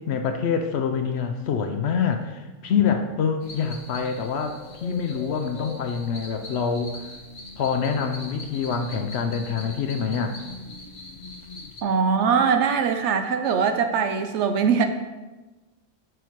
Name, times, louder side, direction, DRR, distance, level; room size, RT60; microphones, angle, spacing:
voice 1, 0.0-7.0 7.6-10.4, left 6 dB, 65° left, 6 dB, 0.7 m, -26 dB
sound 1, 3.4-11.8, left 2 dB, 40° left, 0.9 m, -41 dB
voice 2, 11.8-14.8, right 6 dB, 70° right, 7 dB, 0.8 m, -22 dB
6.8 x 6.3 x 3.0 m, 1.2 s
omnidirectional pair, 1.4 m